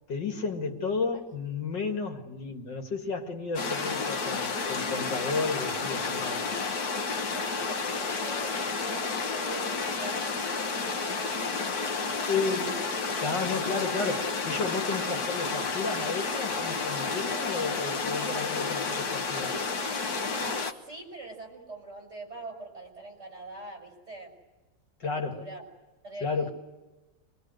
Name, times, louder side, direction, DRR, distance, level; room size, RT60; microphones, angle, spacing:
voice 1, 0.1-6.5 12.3-12.9 13.2-19.5 25.0-25.5 26.2-26.5, left 4 dB, 85° left, 2.9 m, -32 dB
sound 1, 3.6-20.7, left 4 dB, 60° left, 1.8 m, -31 dB
voice 2, 6.7-12.0 20.2-24.4 25.0-25.6 26.0-26.5, right 2 dB, 40° right, 6.2 m, -44 dB
25.5 x 22.5 x 7.9 m
omnidirectional pair, 1.9 m